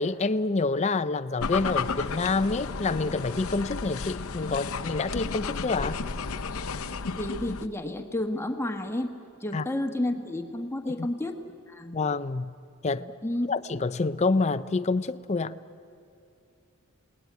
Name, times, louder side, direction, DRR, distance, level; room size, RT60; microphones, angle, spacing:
voice 1, 0.0-6.0 9.5-9.6 10.9-11.1 11.9-12.5 12.8-13.0 13.5-15.6, left 3 dB, 30° left, 0.5 m, -27 dB
sound 1, 1.4-7.7, left 4 dB, 70° left, 0.8 m, -33 dB
voice 2, 7.2-11.4 11.7-12.0 13.0-13.5, left 1 dB, 10° left, 1.3 m, -31 dB
27.5 x 18.5 x 9.4 m
head